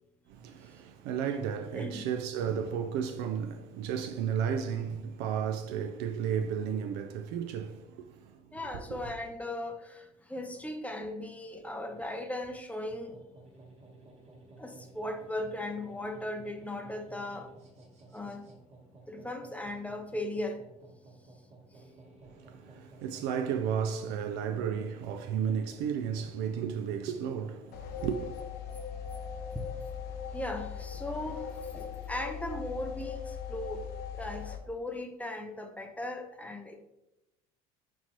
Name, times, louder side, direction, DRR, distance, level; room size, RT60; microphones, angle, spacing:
voice 1, 0.3-8.6 22.3-28.4, right 8 dB, 65° right, 0.4 m, -33 dB
voice 2, 1.7-2.1 8.5-13.2 14.6-17.5 18.1-18.5 19.1-20.6 29.5-29.6 30.3-33.9 34.1-36.8, left 1 dB, 5° left, 0.6 m, -38 dB
sound 1, 12.9-31.7, right 2 dB, 35° right, 1.2 m, -56 dB
sound 2, 27.7-34.6, left 7 dB, 60° left, 0.5 m, -39 dB
4.3 x 3.0 x 2.9 m
hypercardioid pair, 70°, 19 cm